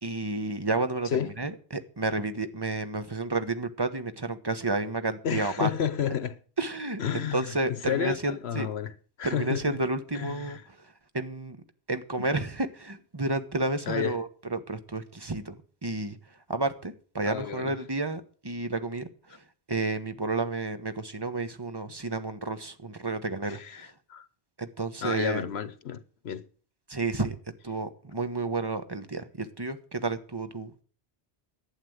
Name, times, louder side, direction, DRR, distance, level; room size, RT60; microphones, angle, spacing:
voice 1, 0.0-5.7 6.6-7.0 7.3-8.7 9.2-10.6 11.1-11.6 11.9-15.5 15.8-16.2 16.5-19.4 19.7-23.9 24.6-25.4 26.9-27.3 27.6-30.8, right 2 dB, 25° right, 1.1 m, -31 dB
voice 2, 5.2-6.4 7.0-7.5 7.9-9.8 10.1-10.6 12.2-12.3 13.9-14.2 17.3-17.8 23.4-24.3 25.0-26.4, left 8 dB, 75° left, 1.0 m, -31 dB
11.5 x 8.7 x 7.8 m
omnidirectional pair, 1.1 m